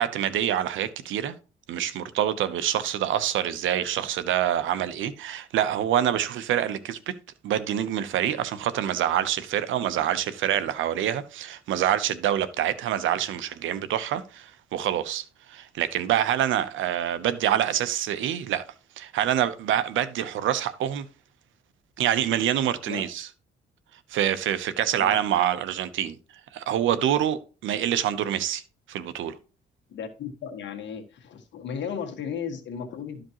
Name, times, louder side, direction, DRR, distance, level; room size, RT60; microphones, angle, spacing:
voice 1, 0.0-1.4 1.7-7.1 7.4-18.7 19.0-21.1 22.0-23.3 24.1-26.2 26.5-28.6 28.9-29.3, right 10 dB, 80° right, 0.8 m, -26 dB
voice 2, 29.9-33.2, left 7 dB, 65° left, 1.6 m, -35 dB
12.0 x 5.1 x 3.0 m
cardioid pair, 90°, 20 cm